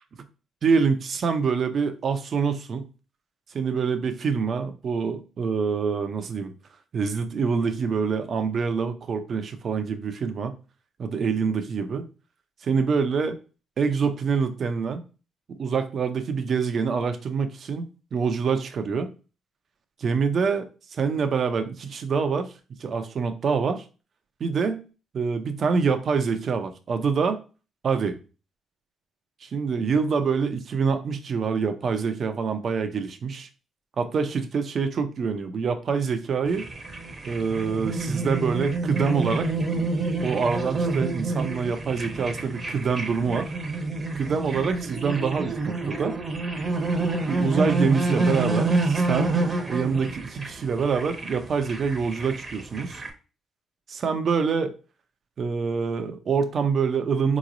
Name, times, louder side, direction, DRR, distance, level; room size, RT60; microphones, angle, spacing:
voice 1, 0.6-2.9 3.5-6.5 6.9-10.5 11.0-12.1 12.6-13.4 13.8-15.0 15.5-19.1 20.0-22.5 22.8-23.8 24.4-24.8 25.1-27.4 27.8-28.2 29.4-33.5 34.0-36.7 37.2-39.5 40.2-43.5 44.1-46.2 47.3-49.4 49.7-53.0 53.9-54.7 55.4-57.4, right 5 dB, 55° right, 8 dB, 0.6 m, -26 dB
sound 1, 36.5-53.1, right 3 dB, 30° right, 0.8 m, -28 dB
3.8 x 3.0 x 2.5 m, 0.33 s
cardioid pair, 90°, 0 cm